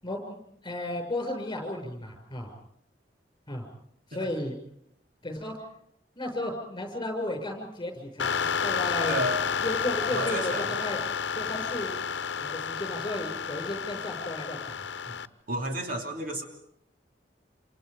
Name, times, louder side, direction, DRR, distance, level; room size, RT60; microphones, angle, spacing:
voice 1, 0.0-2.5 3.5-3.6 4.1-4.6 5.2-5.5 6.2-9.1 9.6-11.0 11.3-12.0 12.4-15.2, left 1 dB, 25° left, 5 dB, 6.5 m, -34 dB
sound 1, 8.2-15.3, left 6 dB, 85° left, 0.9 m, -31 dB
voice 2, 9.1-9.5 10.1-10.8 15.5-16.4, right 1 dB, 55° right, 3 dB, 2.9 m, -31 dB
28.0 x 27.5 x 5.3 m, 0.71 s
head